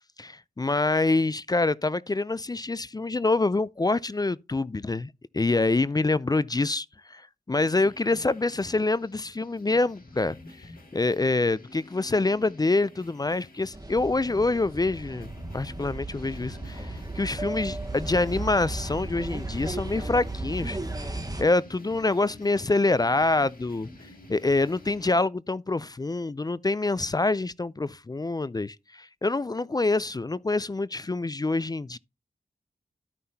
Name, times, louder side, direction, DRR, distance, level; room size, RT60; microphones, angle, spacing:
voice 1, 0.2-20.8 21.4-23.9 24.3-32.0, left 3 dB, 25° left, 0.4 m, -26 dB
sound 1, 7.6-25.1, left 2 dB, 60° left, 2.1 m, -48 dB
sound 2, 13.7-21.4, right 2 dB, 20° right, 1.3 m, -35 dB
13.0 x 5.6 x 2.8 m
cardioid pair, 40°, 17 cm